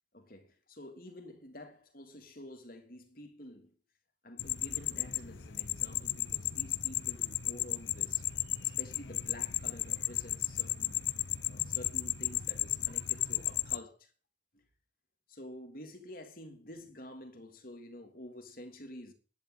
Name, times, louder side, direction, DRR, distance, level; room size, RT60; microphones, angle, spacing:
voice 1, 0.1-3.8 4.2-8.2 8.6-11.0 11.3-14.1 14.5-14.6 15.3-19.1, left 1 dB, 50° left, 3.2 m, -49 dB
sound 1, 4.4-13.8, left 12 dB, 75° left, 0.8 m, -34 dB
11.0 x 10.5 x 8.2 m
head